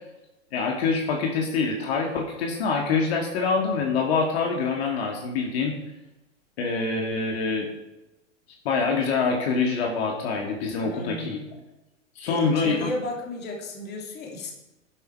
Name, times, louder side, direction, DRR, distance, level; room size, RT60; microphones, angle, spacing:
voice 1, 0.5-5.7 6.6-7.7 8.6-11.4 12.2-12.9, left 4 dB, 55° left, 0 dB, 2.3 m, -25 dB
voice 2, 10.8-11.5 12.3-14.5, left 2 dB, 25° left, 0 dB, 2.9 m, -34 dB
11.5 x 8.1 x 4.8 m, 0.98 s
figure-of-eight pair, 100°, 38 cm